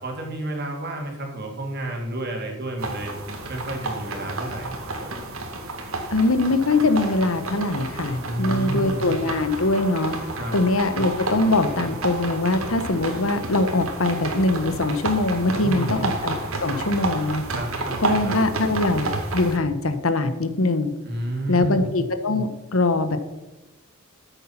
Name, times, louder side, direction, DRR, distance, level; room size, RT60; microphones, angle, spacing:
voice 1, 0.0-3.1 3.5-5.3 8.2-9.0 10.3-10.5 15.6-16.0 17.5-18.3 21.0-21.9, right 1 dB, 50° right, 1 dB, 2.8 m, -30 dB
sound 1, 2.8-19.6, right 2 dB, 80° right, 2.1 m, -31 dB
voice 2, 6.1-10.1 10.5-16.4 16.6-17.4 18.0-19.1 19.3-20.9 21.5-23.2, left 2 dB, 75° left, 10 dB, 1.1 m, -22 dB
sound 2, 9.3-12.9 13.5-13.6, left 3 dB, 5° left, 3.4 m, -43 dB
13.5 x 8.2 x 5.8 m, 1.0 s
head